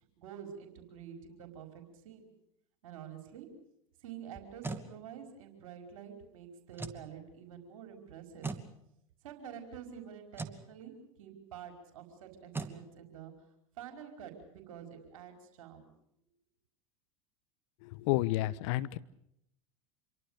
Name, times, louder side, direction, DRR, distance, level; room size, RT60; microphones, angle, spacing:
voice 1, 0.0-2.3 2.8-3.5 4.0-8.5 9.2-10.9 11.2-13.3 13.8-15.9, right 8 dB, 70° right, 5 dB, 5.2 m, -48 dB
sound 1, 4.3-4.9 6.7-7.1 8.4-8.7 10.3-10.6 12.5-12.8, right 3 dB, 10° right, 2.7 m, -39 dB
voice 2, 17.8-19.0, left 17 dB, 60° left, 16 dB, 1.2 m, -31 dB
27.5 x 23.5 x 6.7 m, 0.77 s
hypercardioid pair, 80°, 18 cm